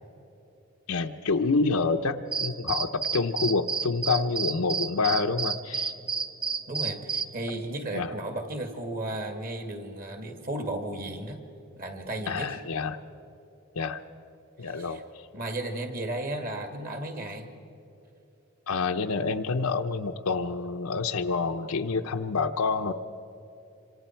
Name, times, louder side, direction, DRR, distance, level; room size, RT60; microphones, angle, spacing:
voice 1, 0.9-5.9 7.9-8.2 12.3-13.0 13.7-14.0 14.6-15.3 18.7-22.9, left 4 dB, 80° left, 5 dB, 0.7 m, -28 dB
sound 1, 2.3-7.3, right 5 dB, 20° right, 0.6 m, -30 dB
voice 2, 6.7-11.4 11.8-12.6 14.6-15.0 15.3-17.5, right 1 dB, 40° right, 5 dB, 2.2 m, -34 dB
26.5 x 26.0 x 4.5 m, 2.8 s
head